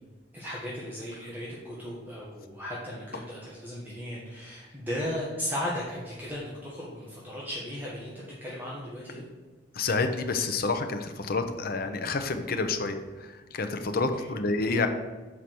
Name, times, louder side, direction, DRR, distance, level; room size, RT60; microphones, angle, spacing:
voice 1, 0.3-9.2 14.1-14.3, left 1 dB, 10° right, -7 dB, 1.5 m, -36 dB
voice 2, 9.7-14.9, left 3 dB, 55° left, 7 dB, 0.8 m, -29 dB
6.9 x 4.8 x 6.0 m, 1.3 s
head